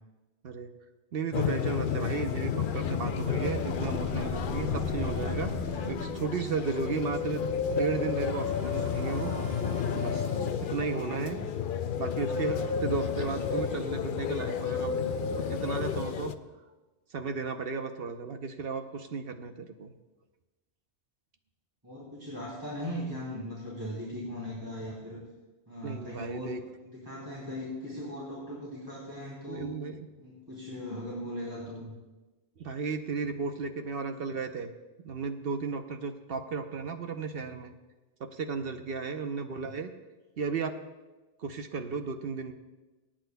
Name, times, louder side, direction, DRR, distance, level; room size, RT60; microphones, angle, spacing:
voice 1, 1.1-5.5 5.9-7.4 7.7-9.3 9.9-10.3 10.7-11.4 12.0-16.3 17.1-19.9 25.8-26.6 29.5-30.1 32.6-34.7 35.0-37.7 38.3-39.9 40.4-40.7 41.4-42.5, right 5 dB, 65° right, 7 dB, 1.0 m, -34 dB
sound 1, 1.3-16.4, left 7 dB, 60° left, 0.6 m, -31 dB
voice 2, 1.7-2.7 10.8-11.5 21.8-25.2 25.7-29.7 30.2-31.9 34.0-34.1 39.4-39.7, equal, 20° right, -6 dB, 2.8 m, -39 dB
sound 2, 2.5-12.1 12.8-14.8, right 3 dB, 45° right, 1.2 m, -42 dB
26.0 x 8.8 x 2.2 m, 1.1 s
omnidirectional pair, 1.1 m